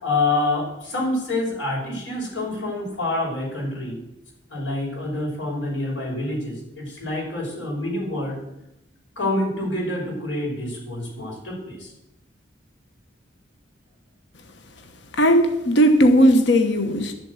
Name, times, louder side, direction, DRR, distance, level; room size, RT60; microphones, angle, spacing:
voice 1, 0.0-4.0 4.5-8.4 9.2-11.9, left 2 dB, 90° left, -3 dB, 6.1 m, -27 dB
voice 2, 15.2-17.1, equal, 70° left, 7 dB, 1.2 m, -17 dB
12.0 x 7.5 x 8.2 m, 0.87 s
head